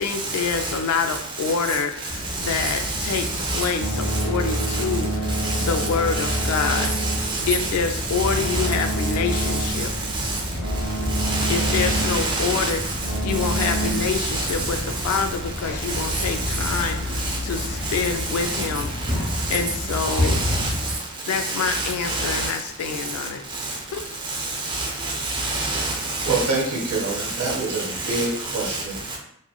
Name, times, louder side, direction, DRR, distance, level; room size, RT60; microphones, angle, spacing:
voice 1, 0.0-6.9 7.5-9.9 11.5-12.8 13.2-19.2 19.5-20.4 21.3-24.0, left 5 dB, 75° left, 0.3 m, -27 dB
sound 1, 2.1-21.0, left 1 dB, 40° right, 1.4 m, -30 dB
voice 2, 2.4-3.7 4.7-4.8 5.4-5.9 6.1-7.7 8.2-8.7 9.8-9.9 10.1-10.4 11.2-12.7 13.5-14.7 15.1-15.2 15.9-16.2 16.6-16.8 17.2-17.4 18.3-18.7 19.4-19.6 20.0-20.7 21.3-22.5 24.3-26.5 27.5-27.6 28.0-28.3 28.7-28.8, right 2 dB, 20° right, 0.5 m, -27 dB
sound 2, 3.8-13.9, right 1 dB, 55° right, 1.1 m, -28 dB
voice 3, 26.2-29.2, right 3 dB, 90° right, 0.8 m, -26 dB
2.9 x 2.6 x 2.3 m
head